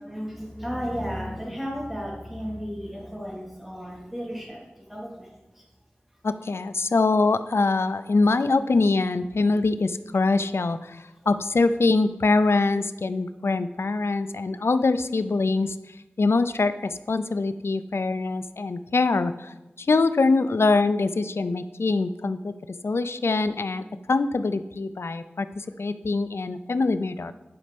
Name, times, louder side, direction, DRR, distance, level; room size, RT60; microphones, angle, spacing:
voice 1, 0.0-5.6, equal, 5° right, -4 dB, 3.4 m, -34 dB
voice 2, 6.2-15.8 16.2-22.5 22.8-27.3, left 3 dB, 90° left, 12 dB, 0.4 m, -24 dB
10.5 x 5.3 x 5.2 m, 1.0 s
wide cardioid pair, 55°, 4 cm